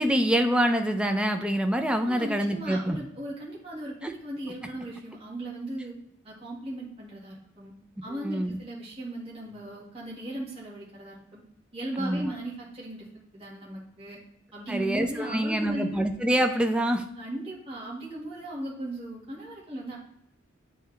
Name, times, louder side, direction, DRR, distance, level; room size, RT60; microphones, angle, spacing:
voice 1, 0.0-3.0 4.0-4.1 8.2-8.6 12.0-12.3 14.7-17.0, equal, 5° right, 5 dB, 0.4 m, -25 dB
voice 2, 2.0-6.0 6.2-7.7 8.0-11.4 11.7-13.1 13.3-14.2 14.5-16.0 17.1-20.0, right 1 dB, 30° right, -6 dB, 1.8 m, -37 dB
9.2 x 3.2 x 3.3 m, 0.77 s
head